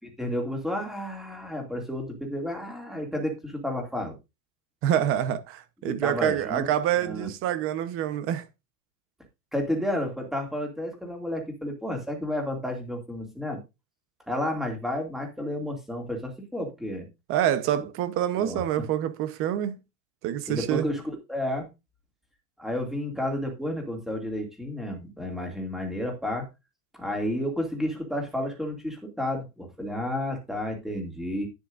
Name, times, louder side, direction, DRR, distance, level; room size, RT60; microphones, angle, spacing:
voice 1, 0.0-4.1 5.8-6.7 7.0-7.3 9.5-13.6 14.3-17.1 18.4-18.6 20.5-21.7 22.6-26.5 26.9-31.5, left 1 dB, ahead, 2.4 m, -31 dB
voice 2, 4.8-8.4 17.3-19.8 20.2-20.9, right 11 dB, 30° right, 1.0 m, -26 dB
11.0 x 9.9 x 2.6 m
supercardioid pair, 165°, 41 cm